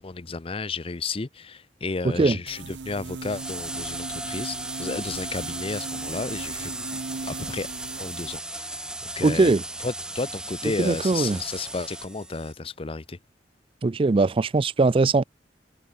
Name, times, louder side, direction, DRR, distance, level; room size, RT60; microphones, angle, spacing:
voice 1, 0.0-6.7 7.2-7.7 8.0-8.8 9.2-9.5 9.8-13.2, left 3 dB, 30° left, 0.6 m, -32 dB
voice 2, 2.0-2.4 9.2-9.6 10.8-11.4 13.8-15.2, right 3 dB, 30° right, 0.4 m, -20 dB
sound 1, 2.5-8.4, right 4 dB, 75° right, 0.6 m, -38 dB
sound 2, 3.2-12.5, right 1 dB, 5° right, 0.7 m, -36 dB
head